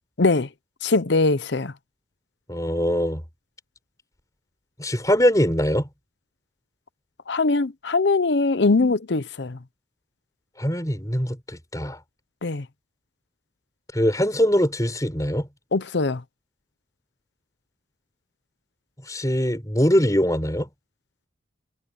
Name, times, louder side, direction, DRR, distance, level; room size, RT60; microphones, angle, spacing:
voice 1, 0.2-0.5 0.8-1.7 7.3-9.6 12.4-12.6 15.7-16.2, left 3 dB, 70° left, 0.8 m, -21 dB
voice 2, 2.5-3.2 4.8-5.9 10.6-12.0 13.9-15.5 19.1-20.7, equal, 20° left, 6.3 m, -22 dB
head